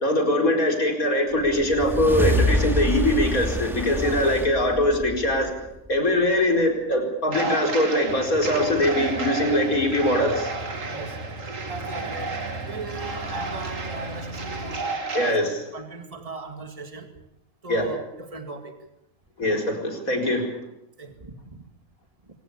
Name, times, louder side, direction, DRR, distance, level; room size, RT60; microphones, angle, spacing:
voice 1, 0.0-5.5 5.9-10.5 15.1-15.6 17.7-17.9 19.4-20.5, left 1 dB, 85° left, 5.0 m, -22 dB
sound 1, 1.4-6.0, left 1 dB, ahead, 2.6 m, -26 dB
voice 2, 4.0-4.3 10.8-11.3 11.7-17.2 17.6-18.9 21.0-21.4, right 4 dB, 25° right, 2.2 m, -39 dB
sound 2, 7.3-15.3, right 3 dB, 65° right, 2.6 m, -32 dB
sound 3, 8.0-14.8, right 1 dB, 35° left, 7.4 m, -38 dB
25.0 x 16.5 x 8.6 m
omnidirectional pair, 1.4 m